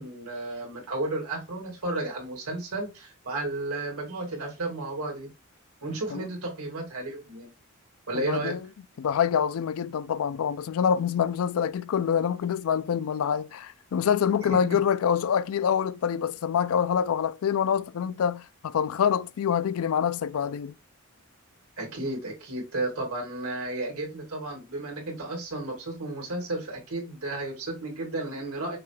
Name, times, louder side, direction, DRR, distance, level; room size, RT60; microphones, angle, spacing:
voice 1, 0.0-5.3 5.8-7.5 8.1-8.5 14.5-14.6 21.8-28.8, right 2 dB, 85° right, 2.0 m, -33 dB
voice 2, 8.1-8.6 9.0-20.7, left 8 dB, 70° left, 0.4 m, -26 dB
5.8 x 2.3 x 3.2 m
head